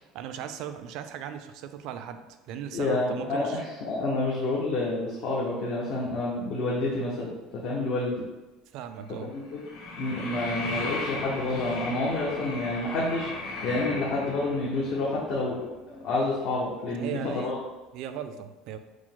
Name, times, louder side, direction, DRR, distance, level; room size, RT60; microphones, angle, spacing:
voice 1, 0.1-3.6 8.7-9.3 16.9-18.8, right 9 dB, 60° right, 9 dB, 0.3 m, -38 dB
voice 2, 2.7-8.2 9.3-9.6 10.0-15.7 16.0-17.6, left 2 dB, 55° left, -4 dB, 0.7 m, -29 dB
sound 1, 8.9-17.3 17.5-17.6, left 2 dB, 85° left, 1.1 m, -37 dB
4.8 x 2.0 x 3.7 m, 1.1 s
cardioid pair, 145°, 0 cm